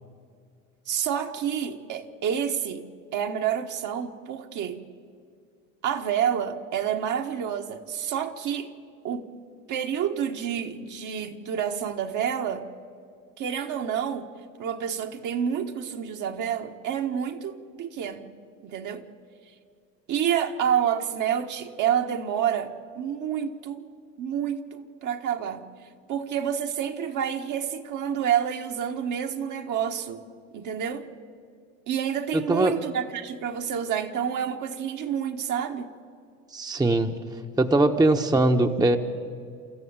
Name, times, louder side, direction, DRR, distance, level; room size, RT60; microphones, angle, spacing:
voice 1, 0.9-2.9 3.1-4.8 5.8-8.7 9.0-9.3 9.7-12.7 13.4-14.3 14.6-18.3 18.6-19.0 20.1-23.8 24.2-25.6 26.1-30.2 30.5-31.0 31.9-35.9, right 8 dB, 50° right, 4 dB, 1.7 m, -28 dB
voice 2, 32.3-32.8 36.5-37.2 37.6-39.0, right 2 dB, 10° right, 5 dB, 1.1 m, -21 dB
29.0 x 14.0 x 8.9 m, 2.3 s
hypercardioid pair, 85°, 38 cm